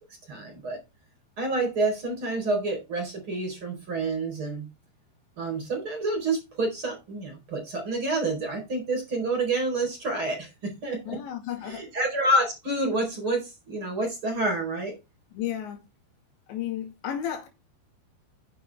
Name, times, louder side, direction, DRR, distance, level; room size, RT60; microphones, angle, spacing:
voice 1, 0.3-0.8 1.4-4.6 5.4-11.2 11.6-14.9, right 2 dB, 25° right, 5.1 m, -28 dB
voice 2, 11.0-11.8 15.3-15.8 16.5-17.5, left 10 dB, 70° left, 4.3 m, -33 dB
10.0 x 8.7 x 3.6 m
omnidirectional pair, 5.5 m